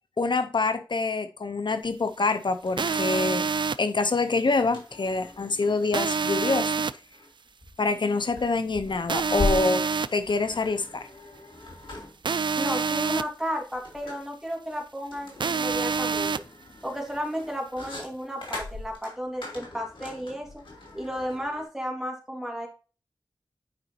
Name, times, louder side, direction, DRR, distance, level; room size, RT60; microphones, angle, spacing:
voice 1, 0.2-3.5 3.8-6.7 7.8-9.8 10.1-11.0, left 3 dB, 70° left, 0.6 m, -26 dB
sound 1, 1.8-1.9 2.2-3.5 4.5-21.6, left 2 dB, 85° left, 2.7 m, -39 dB
sound 2, 2.8-3.8 5.9-6.9 9.1-10.1 12.2-13.2 15.4-16.4, right 5 dB, 70° right, 0.4 m, -26 dB
voice 2, 12.6-16.3 16.8-20.6 20.9-22.7, equal, 5° right, 2.5 m, -33 dB
8.9 x 5.0 x 2.7 m
wide cardioid pair, 55°, 8 cm